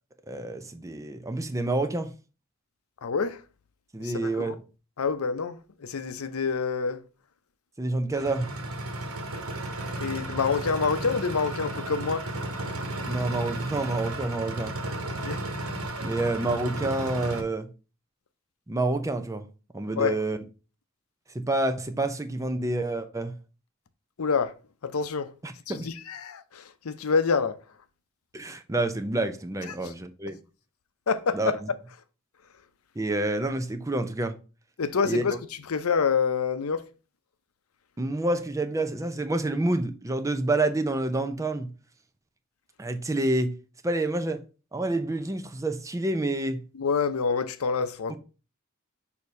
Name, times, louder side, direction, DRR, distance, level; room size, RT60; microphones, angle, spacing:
voice 1, 0.3-2.1 3.9-4.6 7.8-8.5 13.1-14.8 16.0-17.7 18.7-19.5 19.7-20.4 21.3-23.3 25.4-25.9 28.3-30.4 31.3-31.5 33.0-34.3 35.0-35.2 38.0-41.7 42.8-43.5 43.8-44.4 44.7-46.6 48.1-48.2, right 2 dB, 15° right, 0.6 m, -28 dB
voice 2, 3.0-3.4 4.0-4.6 5.0-7.0 10.0-12.3 15.1-15.4 19.9-20.2 24.2-24.5 24.8-25.3 25.7-27.6 29.7-29.9 31.1-31.6 34.8-35.4 35.7-36.9 46.7-48.2, left 5 dB, 85° left, 0.6 m, -27 dB
sound 1, 8.1-17.4, right 1 dB, 85° right, 1.2 m, -34 dB
6.5 x 2.8 x 5.2 m
head